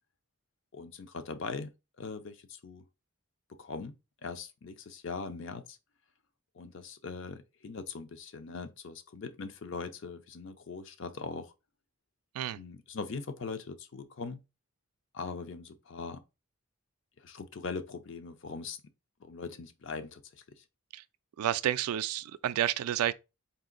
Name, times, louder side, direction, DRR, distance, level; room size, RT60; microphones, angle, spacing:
voice 1, 0.7-2.9 3.5-3.9 4.2-5.8 6.5-11.5 12.6-14.4 15.1-16.2 17.2-18.8 19.2-20.6, left 4 dB, 55° left, 0.5 m, -41 dB
voice 2, 21.4-23.1, right 11 dB, 90° right, 0.3 m, -30 dB
4.1 x 2.5 x 3.7 m
head